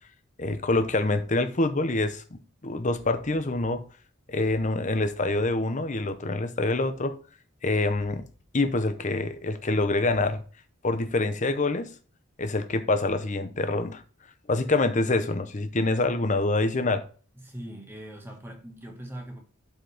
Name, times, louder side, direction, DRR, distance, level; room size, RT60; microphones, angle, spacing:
voice 1, 0.4-3.8 4.3-7.1 7.6-8.3 8.5-10.4 10.8-11.9 12.4-14.0 14.5-17.0, left 2 dB, 35° left, 0.8 m, -26 dB
voice 2, 17.3-19.4, right 1 dB, 10° right, 1.7 m, -41 dB
11.5 x 4.2 x 3.4 m
head